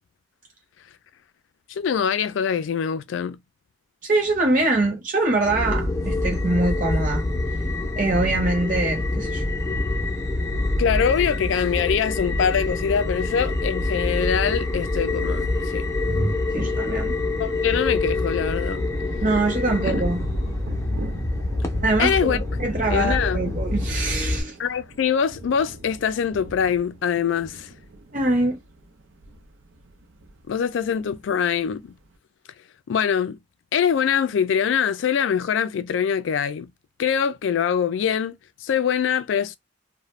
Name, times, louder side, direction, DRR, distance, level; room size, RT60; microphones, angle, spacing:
voice 1, 1.7-3.4 10.8-15.9 17.4-18.9 19.9-20.0 22.0-22.4 22.9-23.4 24.6-27.7 30.5-31.9 32.9-33.4 33.7-36.7 37.0-39.6, left 7 dB, 75° left, 0.3 m, -23 dB
voice 2, 4.0-7.2 8.0-9.4 16.1-17.1 19.2-20.2 21.8-24.5 28.1-28.6, right 2 dB, 45° right, 0.8 m, -23 dB
sound 1, 5.4-24.4, left 2 dB, 15° left, 0.5 m, -26 dB
Thunder / Rain, 15.6-15.7 15.9-16.0 16.3-32.2, right 2 dB, 80° right, 0.5 m, -41 dB
2.4 x 2.1 x 3.0 m
head